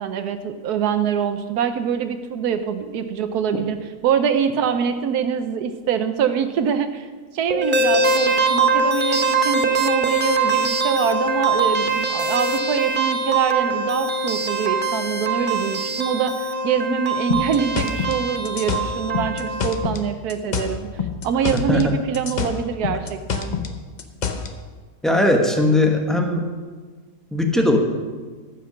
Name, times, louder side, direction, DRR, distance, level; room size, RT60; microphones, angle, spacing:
voice 1, 0.0-3.8 4.0-7.1 7.3-20.9 21.2-23.5, right 7 dB, 80° right, 9 dB, 1.2 m, -24 dB
sound 1, 7.5-19.8, right 3 dB, 45° right, 0.8 m, -22 dB
sound 2, 17.3-20.0 20.3-21.9 22.1-24.5, left 6 dB, 45° left, 0.6 m, -26 dB
voice 2, 21.5-22.0 25.0-26.5 27.3-27.8, left 1 dB, ahead, 2 dB, 0.8 m, -19 dB
14.0 x 5.9 x 6.3 m, 1.5 s
omnidirectional pair, 1.7 m